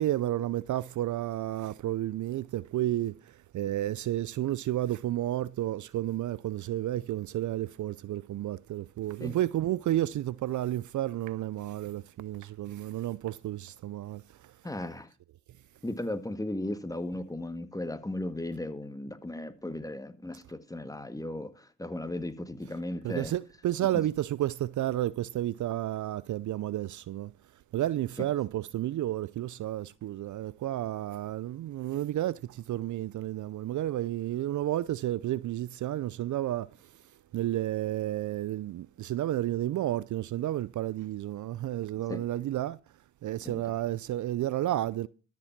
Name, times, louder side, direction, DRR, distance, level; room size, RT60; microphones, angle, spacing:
voice 1, 0.0-14.5 23.0-27.3 27.7-37.0 37.3-42.8 43.2-45.1, right 13 dB, 55° right, 0.6 m, -31 dB
voice 2, 14.6-15.1 15.8-23.3 42.1-42.2 43.5-43.6, left 1 dB, 10° left, 1.8 m, -36 dB
13.0 x 7.5 x 5.9 m
supercardioid pair, 55°, 36 cm